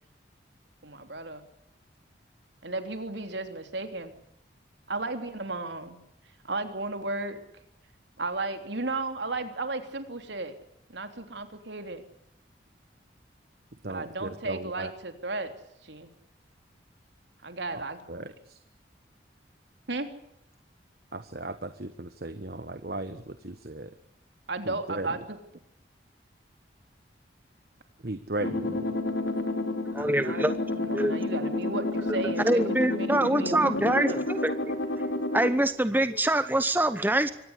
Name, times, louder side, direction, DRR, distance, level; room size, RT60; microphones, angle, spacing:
voice 1, 0.8-1.4 2.6-4.1 4.9-6.0 6.4-7.4 8.2-10.5 10.9-12.0 13.9-15.5 15.8-16.1 17.4-18.3 19.9-20.1 24.5-25.4 30.0-30.5 30.7-34.3, right 2 dB, 75° right, 7 dB, 3.4 m, -34 dB
voice 2, 13.8-14.9 17.7-18.6 21.1-23.9 24.7-25.1 28.0-29.0, right 2 dB, 55° right, 10 dB, 1.3 m, -37 dB
sound 1, 28.4-35.5, left 2 dB, 75° left, 3.4 m, -30 dB
voice 3, 29.9-30.5 30.9-31.2 32.4-34.7 35.3-37.3, right 1 dB, 10° right, 11 dB, 0.9 m, -25 dB
24.5 x 18.0 x 8.4 m, 0.83 s
head